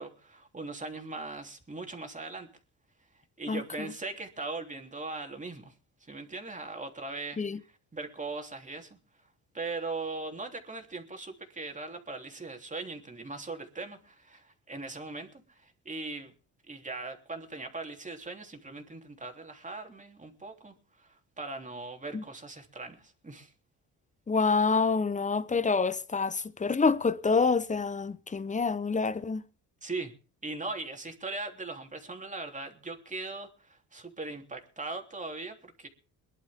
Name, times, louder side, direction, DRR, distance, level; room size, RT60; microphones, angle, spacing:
voice 1, 0.0-2.5 3.4-5.7 6.0-9.0 9.5-16.3 16.7-23.5 29.8-30.1 30.4-35.9, right 3 dB, 20° right, 3.3 m, -40 dB
voice 2, 24.3-29.4, left 4 dB, 20° left, 0.9 m, -27 dB
22.0 x 11.5 x 3.7 m
cardioid pair, 90°, 37 cm